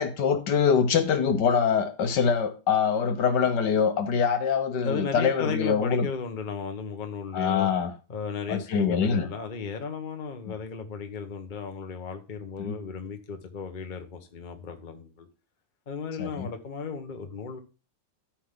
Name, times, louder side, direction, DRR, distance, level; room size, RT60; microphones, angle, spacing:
voice 1, 0.0-6.1 7.3-7.9 8.5-9.3 12.6-12.8 16.2-16.5, left 6 dB, 65° left, 1.6 m, -24 dB
voice 2, 4.8-7.7 8.1-15.3 15.9-17.6, left 5 dB, 30° left, 1.1 m, -35 dB
13.0 x 5.8 x 3.8 m
omnidirectional pair, 2.0 m